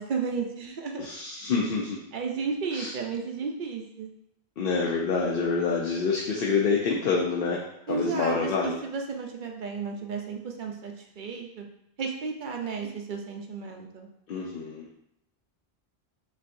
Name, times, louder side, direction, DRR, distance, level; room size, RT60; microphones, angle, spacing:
voice 1, 0.0-1.1 2.1-4.1 7.9-11.7 12.0-14.1, right 5 dB, 60° right, 2 dB, 0.7 m, -33 dB
voice 2, 1.0-2.0 2.7-2.9 4.6-8.8 14.3-14.9, left 4 dB, 70° left, -2 dB, 0.8 m, -27 dB
6.4 x 2.7 x 2.6 m, 0.79 s
omnidirectional pair, 1.0 m